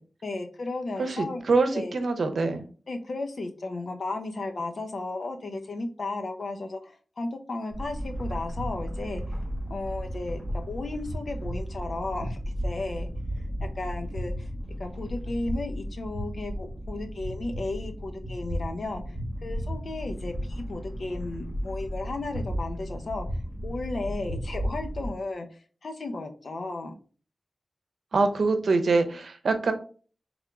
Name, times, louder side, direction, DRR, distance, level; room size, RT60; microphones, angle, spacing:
voice 1, 0.2-1.4 1.7-1.9 2.9-9.2 9.7-13.1 13.7-14.5 14.8-19.1 19.4-23.3 23.6-25.5 25.8-26.9, left 2 dB, 65° left, 5 dB, 0.8 m, -34 dB
voice 2, 1.0-2.6 28.1-29.7, right 3 dB, 80° right, 8 dB, 0.7 m, -24 dB
sound 1, 7.7-25.1, equal, 10° left, 1.8 m, -34 dB
3.6 x 3.5 x 3.5 m, 0.39 s
wide cardioid pair, 75°, 0 cm